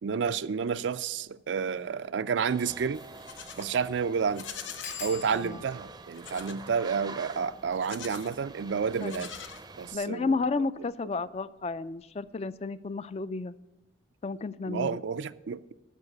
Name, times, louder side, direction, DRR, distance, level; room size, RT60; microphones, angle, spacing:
voice 1, 0.0-3.0 3.6-4.5 5.0-9.3 9.8-10.3 14.7-15.7, right 6 dB, 80° right, 0.4 m, -30 dB
sound 1, 1.6-1.8 2.3-2.4 2.6-2.7 3.2-3.5 3.7-3.8 4.8-10.1 10.8-11.3 11.6-12.0 12.2-12.3, left 5 dB, 70° left, 4.3 m, -47 dB
sound 2, 2.5-9.9, right 3 dB, 20° right, 0.5 m, -47 dB
Livestock farm animals working animals, 2.9-3.7 4.3-5.1 6.1-6.6 7.7-8.4 8.9-10.0, left 8 dB, 90° left, 0.8 m, -44 dB
voice 2, 5.3-5.6 9.0-9.2 9.9-13.5 14.2-15.0, left 3 dB, 35° left, 0.3 m, -32 dB
13.0 x 4.8 x 8.5 m
head